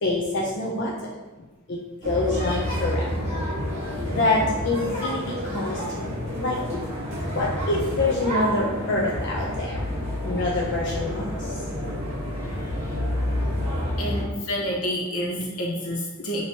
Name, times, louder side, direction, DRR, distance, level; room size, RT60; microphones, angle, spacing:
voice 1, 0.0-1.2 1.7-3.1 4.1-6.8 7.1-9.8 10.2-11.6 14.2-14.3, left 2 dB, 55° left, -4 dB, 0.5 m, -26 dB
sound 1, 2.0-14.2, equal, 30° right, 1.1 m, -29 dB
voice 2, 14.0-16.4, equal, 75° left, -2 dB, 1.0 m, -28 dB
6.0 x 2.8 x 2.7 m, 1.2 s
head